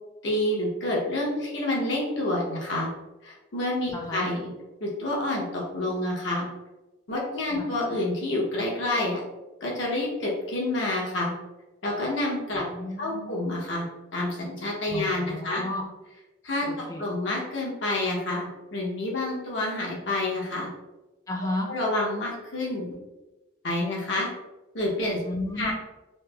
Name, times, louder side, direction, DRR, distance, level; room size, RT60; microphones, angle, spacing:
voice 1, 0.2-2.9 3.2-4.5 4.8-6.5 7.1-9.2 9.6-11.3 11.8-12.6 13.0-13.8 14.1-15.6 16.4-20.7 21.7-22.9 23.6-24.3 24.7-25.2 25.6-25.7, left 1 dB, 75° left, -2 dB, 0.9 m, -28 dB
voice 2, 3.9-4.3 7.6-7.7 12.6-13.3 14.9-15.9 16.7-17.0 21.3-21.7 25.2-25.7, left 1 dB, 20° left, 1 dB, 0.4 m, -33 dB
3.2 x 2.0 x 3.3 m, 1.1 s
head